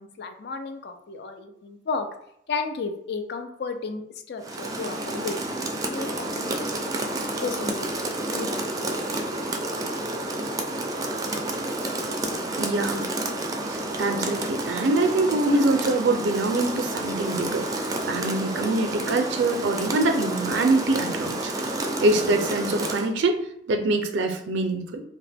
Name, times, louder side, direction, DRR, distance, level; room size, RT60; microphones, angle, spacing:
voice 1, 0.0-2.1 2.5-4.0 4.3-7.9 8.3-8.8, left 4 dB, 65° left, 6 dB, 0.4 m, -33 dB
Rain, 4.4-23.1, right 1 dB, 20° right, 0.3 m, -30 dB
voice 2, 12.6-13.1 13.7-21.7 22.0-25.0, right 2 dB, 85° right, 5 dB, 0.4 m, -24 dB
2.8 x 2.1 x 3.3 m, 0.73 s
head